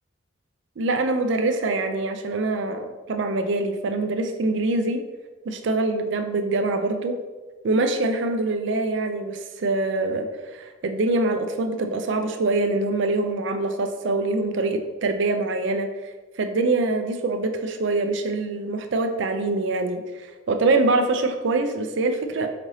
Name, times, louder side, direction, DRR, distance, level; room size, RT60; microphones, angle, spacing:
voice 1, 0.8-5.0 5.5-7.2 7.6-10.3 10.5-15.9 16.4-22.5, right 2 dB, 60° right, 7 dB, 0.4 m, -24 dB
5.0 x 2.7 x 3.1 m, 1.3 s
head